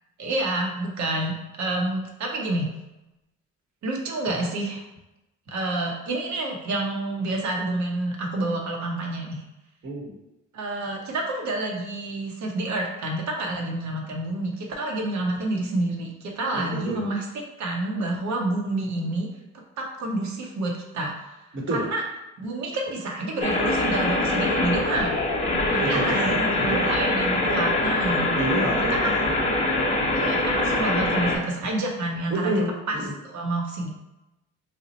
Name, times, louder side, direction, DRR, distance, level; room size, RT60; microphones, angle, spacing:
voice 1, 0.2-2.7 3.8-4.8 5.5-9.4 10.5-17.3 17.6-19.3 19.8-21.3 21.7-22.0 22.4-25.2 25.7-28.3 28.9-29.2 30.1-32.5 32.9-33.0 33.2-33.9, right 2 dB, 65° right, 1 dB, 0.8 m, -28 dB
voice 2, 9.8-10.2 16.5-17.0 21.5-21.9 25.8-26.9 28.3-29.5 32.3-33.1, right 1 dB, 40° right, -2 dB, 0.9 m, -29 dB
sound 1, 23.4-31.4, left 2 dB, 25° left, 0.6 m, -24 dB
2.8 x 2.0 x 4.0 m, 0.98 s
cardioid pair, 90°, 30 cm